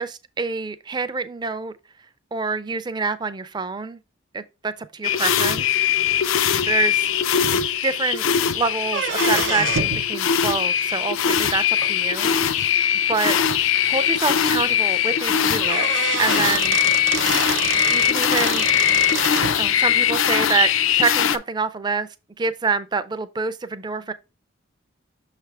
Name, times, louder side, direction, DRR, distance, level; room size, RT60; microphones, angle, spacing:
voice 1, 0.0-1.7 2.3-4.0 4.3-5.8 6.7-7.1 7.8-8.2 8.5-12.8 13.1-16.8 17.9-18.7 19.6-22.1 22.4-24.1, right 4 dB, 20° right, 0.3 m, -26 dB
sound 1, 5.0-21.4, left 9 dB, 70° left, 0.4 m, -21 dB
sound 2, 8.8-10.0 11.8-11.9 12.8-12.9 13.3-13.4 13.7-13.8 15.2-15.3 15.6-19.6, right 6 dB, 60° right, 0.8 m, -27 dB
6.4 x 3.3 x 4.6 m
head